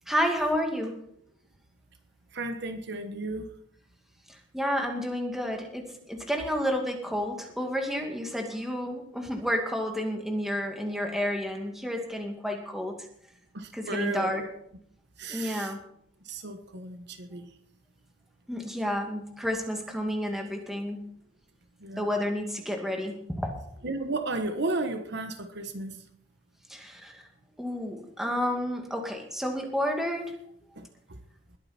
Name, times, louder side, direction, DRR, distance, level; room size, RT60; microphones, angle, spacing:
voice 1, 0.1-0.9 4.3-13.0 13.7-14.4 15.3-15.8 18.5-21.1 22.0-23.5 26.7-27.2 27.6-30.3, equal, ahead, 2.3 m, -30 dB
voice 2, 2.3-3.5 13.5-14.5 15.2-15.7 16.2-17.5 21.8-22.1 23.8-26.0 30.8-30.9, right 2 dB, 60° right, 1.3 m, -34 dB
21.0 x 8.9 x 4.4 m
head